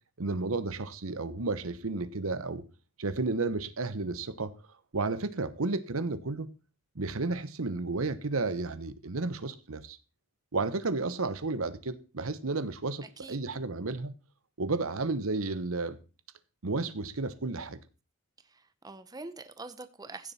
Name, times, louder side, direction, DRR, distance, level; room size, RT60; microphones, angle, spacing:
voice 1, 0.2-2.6 3.0-4.5 4.9-6.5 6.9-10.0 10.5-14.1 14.6-16.0 16.6-17.8, right 3 dB, 80° right, 1.0 m, -32 dB
voice 2, 13.0-13.4 18.5-20.3, right 3 dB, 20° right, 0.8 m, -44 dB
15.5 x 7.2 x 4.2 m
head